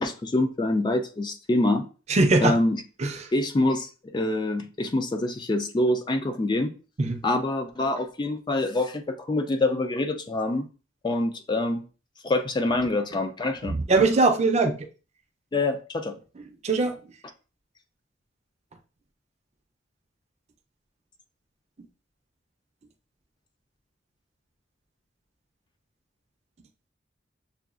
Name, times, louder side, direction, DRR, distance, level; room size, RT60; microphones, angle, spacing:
voice 1, 0.0-1.8 2.4-2.8 3.3-6.7 7.2-10.7 11.0-11.8 12.2-13.8 15.5-16.2, left 2 dB, 25° left, 0.3 m, -25 dB
voice 2, 2.1-2.6 3.0-3.3 7.0-7.2 13.6-14.8 16.6-17.0, right 3 dB, 35° right, 0.5 m, -21 dB
6.8 x 2.3 x 2.4 m
head